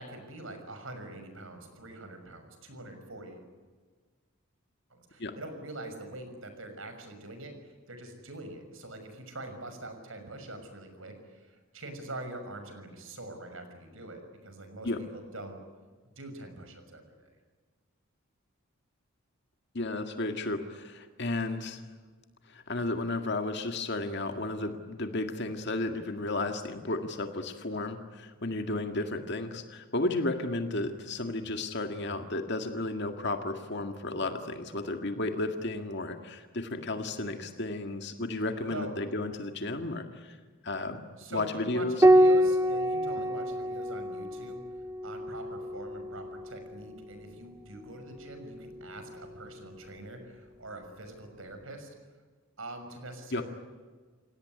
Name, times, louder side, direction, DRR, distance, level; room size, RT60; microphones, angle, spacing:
voice 1, 0.0-3.5 4.9-15.6 16.0-17.3 38.7-38.9 41.2-44.6 45.0-51.9 52.6-53.4, right 2 dB, 70° right, 7 dB, 6.1 m, -44 dB
voice 2, 19.7-21.8 22.5-40.4 40.6-41.0 41.3-42.0 53.3-53.4, left 2 dB, 55° left, 6 dB, 1.9 m, -33 dB
Piano, 42.0-46.9 48.5-49.3, right 1 dB, 15° right, 0.7 m, -26 dB
29.0 x 18.0 x 9.5 m, 1.5 s
head